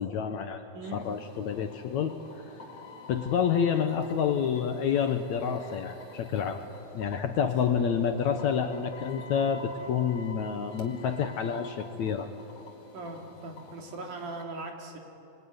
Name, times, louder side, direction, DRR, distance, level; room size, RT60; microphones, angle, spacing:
voice 1, 0.0-0.6 0.9-2.1 3.1-6.6 6.9-12.3, left 7 dB, 65° left, 7 dB, 2.0 m, -28 dB
sound 1, 0.8-14.4, left 3 dB, 45° left, 3.0 m, -49 dB
voice 2, 12.9-15.0, right 2 dB, 60° right, 2 dB, 4.0 m, -39 dB
26.5 x 23.5 x 9.7 m, 2.9 s
omnidirectional pair, 4.1 m